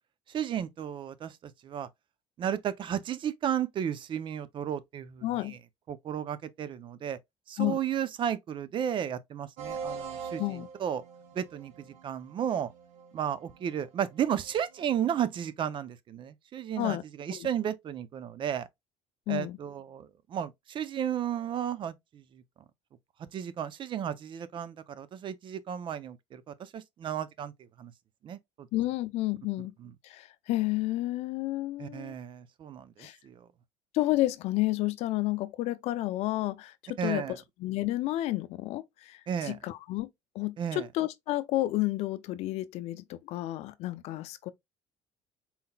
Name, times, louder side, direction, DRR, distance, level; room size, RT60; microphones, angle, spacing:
voice 1, 0.3-1.9 2.4-5.6 5.9-7.2 7.5-11.0 11.3-12.7 13.1-18.7 19.3-22.4 23.3-27.5 27.8-27.9 28.2-28.7 29.8-29.9 31.8-33.5 37.0-37.3 39.3-39.6 40.6-40.9, right 9 dB, 45° right, 0.5 m, -34 dB
voice 2, 5.2-5.6 7.6-7.8 10.4-10.7 16.8-17.0 17.3-17.5 19.3-19.6 28.7-29.7 30.0-32.2 33.0-33.2 33.9-40.1 40.3-44.5, left 17 dB, 70° left, 0.5 m, -31 dB
sound 1, 9.6-14.9, right 5 dB, 75° right, 1.4 m, -43 dB
4.2 x 3.8 x 2.2 m
cardioid pair, 100°, 11 cm